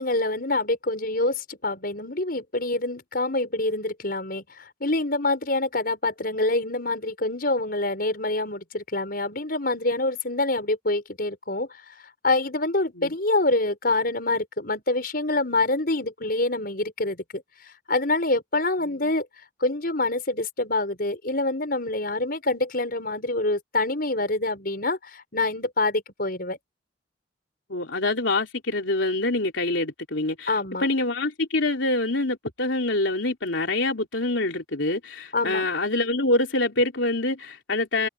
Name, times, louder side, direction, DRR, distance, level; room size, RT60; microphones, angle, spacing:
voice 1, 0.0-11.7 12.2-17.4 17.9-19.3 19.6-26.6 30.5-30.9 35.3-35.7, left 2 dB, 50° left, 6.1 m, -26 dB
voice 2, 27.7-30.5 30.8-38.1, left 2 dB, 90° left, 3.5 m, -25 dB
head